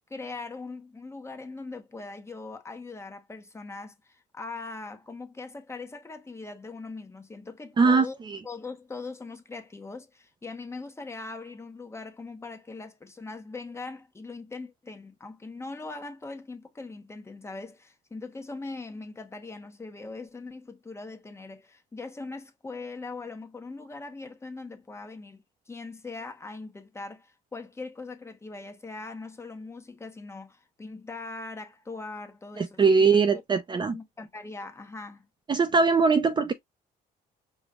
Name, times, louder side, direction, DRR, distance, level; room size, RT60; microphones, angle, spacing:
voice 1, 0.1-8.2 8.4-33.4 33.7-35.3, left 3 dB, 15° left, 0.9 m, -41 dB
voice 2, 7.8-8.4 32.6-34.0 35.5-36.5, right 4 dB, 25° right, 0.5 m, -21 dB
5.1 x 2.2 x 3.7 m
cardioid pair, 110°, 17 cm